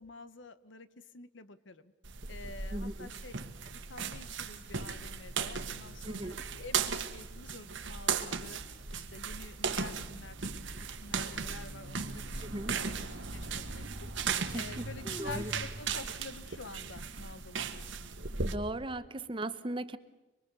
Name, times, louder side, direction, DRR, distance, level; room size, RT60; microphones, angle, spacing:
voice 1, 0.0-1.9 2.3-3.3 3.6-8.6 8.9-10.4 10.6-14.1 14.5-18.1, left 3 dB, 70° left, 14 dB, 1.0 m, -49 dB
sound 1, 2.0-18.5, right 5 dB, 70° right, 1.6 m, -37 dB
voice 2, 2.7-3.1 6.0-6.4 12.4-12.7 14.5-14.8 15.2-15.5 18.4-20.0, right 1 dB, 25° right, 13 dB, 0.8 m, -38 dB
sound 2, 15.0-15.8 16.1-16.2 16.9-17.0 17.7-18.1, left 1 dB, 10° left, 0.7 m, -49 dB
25.0 x 23.5 x 6.8 m, 1.1 s
head